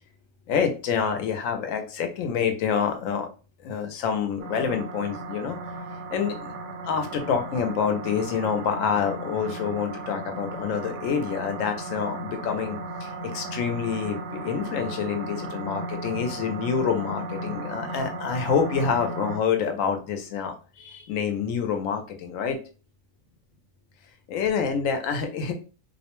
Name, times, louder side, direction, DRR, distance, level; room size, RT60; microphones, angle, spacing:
voice 1, 0.5-3.3 3.6-5.6 6.1-6.5 6.8-22.6 24.3-25.5, left 6 dB, 80° left, 5 dB, 1.0 m, -27 dB
sound 1, 4.4-19.4, right 2 dB, 70° right, 0.9 m, -36 dB
2.5 x 2.1 x 2.9 m, 0.35 s
omnidirectional pair, 1.4 m